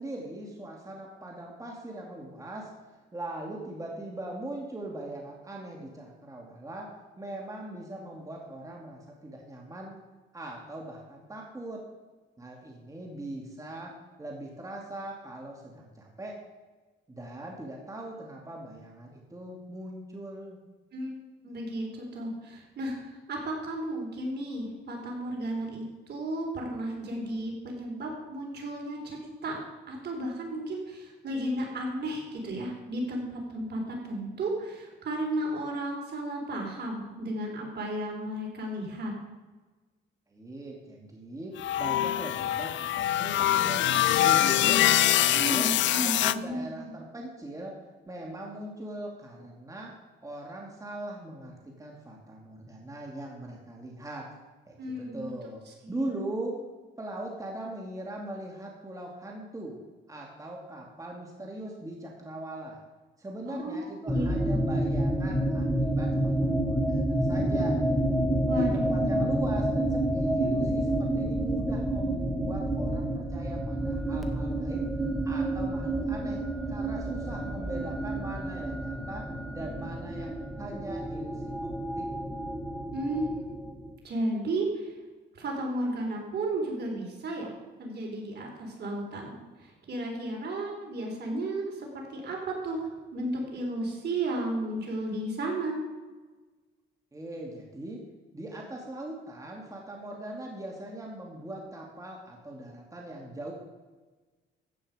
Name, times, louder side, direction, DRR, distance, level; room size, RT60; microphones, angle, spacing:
voice 1, 0.0-2.7 3.1-6.9 7.2-10.0 10.3-11.8 12.4-13.9 14.2-16.4 17.1-20.6 40.3-43.8 44.2-44.9 45.2-47.7 48.1-49.9 50.2-54.3 54.7-55.6 55.9-56.6 57.0-59.8 60.1-62.8 63.2-67.8 68.5-74.8 75.2-76.4 76.7-79.3 79.5-81.7 82.0-82.1 97.1-98.0 98.3-103.5, right 1 dB, 15° right, -1 dB, 2.5 m, -40 dB
voice 2, 21.4-29.6 29.9-39.1 45.3-46.9 54.8-55.3 55.7-56.1 63.5-64.6 68.5-69.3 82.9-83.3 84.0-85.0 85.3-87.5 87.8-95.8, right 1 dB, 55° right, 0 dB, 4.1 m, -34 dB
sound 1, 41.6-46.4, left 13 dB, 70° left, 0.5 m, -24 dB
sound 2, 64.1-83.9, right 1 dB, ahead, 1.7 m, -29 dB
14.5 x 8.6 x 5.1 m, 1.3 s
cardioid pair, 90°, 20 cm